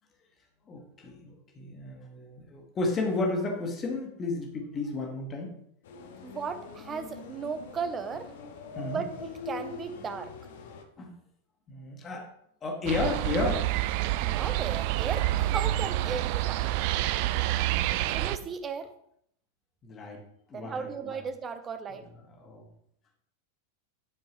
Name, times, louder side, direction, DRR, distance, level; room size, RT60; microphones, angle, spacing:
voice 1, 0.7-5.5 8.7-9.0 11.0-11.1 11.7-12.2 12.6-13.7 17.5-18.3 19.8-20.2 20.5-21.2 22.4-22.6, left 3 dB, 25° left, 1 dB, 1.7 m, -33 dB
sound 1, 5.8-10.8, left 5 dB, 55° left, 0.9 m, -43 dB
voice 2, 6.2-8.3 8.8-10.3 14.0-16.7 18.1-18.9 20.5-22.0, right 5 dB, 20° right, 10 dB, 0.7 m, -36 dB
sound 2, 12.9-18.4, right 15 dB, 45° right, 0.3 m, -28 dB
11.0 x 4.5 x 3.1 m, 0.71 s
figure-of-eight pair, 90°, 0 cm